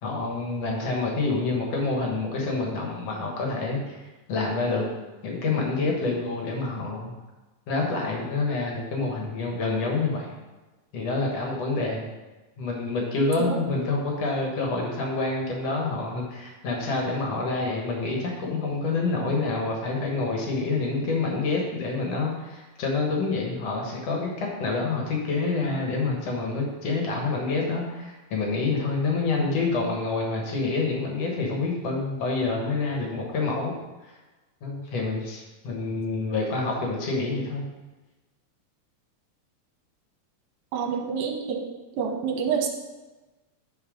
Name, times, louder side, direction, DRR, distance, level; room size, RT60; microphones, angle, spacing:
voice 1, 0.0-4.9 5.2-7.1 7.7-10.3 10.9-12.1 12.6-33.7 34.6-37.6, left 3 dB, 55° left, 0 dB, 2.1 m, -27 dB
voice 2, 40.7-41.6 42.0-42.7, right 6 dB, 70° right, 2 dB, 2.0 m, -27 dB
9.6 x 4.6 x 5.0 m, 1.2 s
omnidirectional pair, 4.1 m